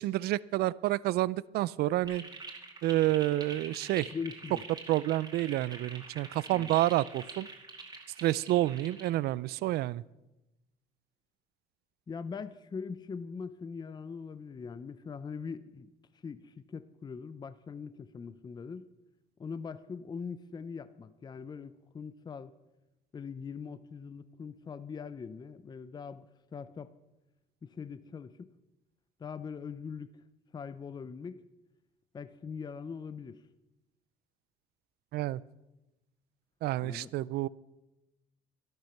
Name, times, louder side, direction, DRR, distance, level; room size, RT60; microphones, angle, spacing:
voice 1, 0.0-2.2 2.8-4.1 4.9-7.5 8.2-10.0 35.1-35.4 36.6-37.5, right 15 dB, 70° right, 21 dB, 0.4 m, -29 dB
sound 1, 2.0-9.1, right 3 dB, 25° right, 2.3 m, -46 dB
voice 2, 4.1-4.6 6.5-6.8 12.1-15.9 16.2-18.9 19.4-22.5 23.1-26.3 26.5-26.9 27.6-28.5 29.2-30.2 30.5-31.4 32.1-33.4 36.8-37.1, left 5 dB, 25° left, 14 dB, 0.5 m, -42 dB
12.0 x 11.5 x 5.8 m, 0.98 s
cardioid pair, 110°, 17 cm